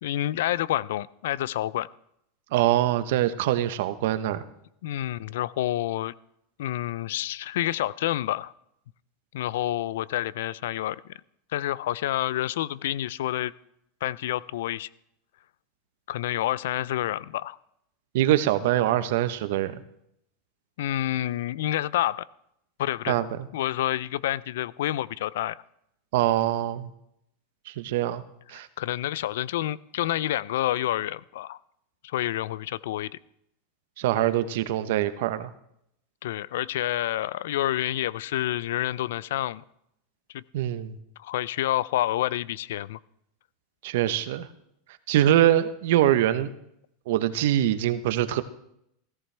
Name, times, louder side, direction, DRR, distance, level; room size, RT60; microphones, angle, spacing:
voice 1, 0.0-1.9 4.8-6.1 6.6-8.5 9.3-11.1 11.5-13.5 14.0-14.9 16.1-17.6 20.8-22.3 22.8-23.2 23.5-25.6 28.8-31.6 32.0-33.1 36.2-39.6 40.3-40.4 41.2-43.0, left 13 dB, 80° left, 0.4 m, -28 dB
voice 2, 2.5-4.4 18.1-19.7 23.1-23.3 26.1-26.9 27.7-28.2 28.5-28.7 34.0-35.5 40.5-41.0 43.8-44.5 45.1-46.5 47.1-48.4, right 13 dB, 75° right, 0.9 m, -23 dB
17.0 x 14.5 x 3.4 m
supercardioid pair, 130°, 0 cm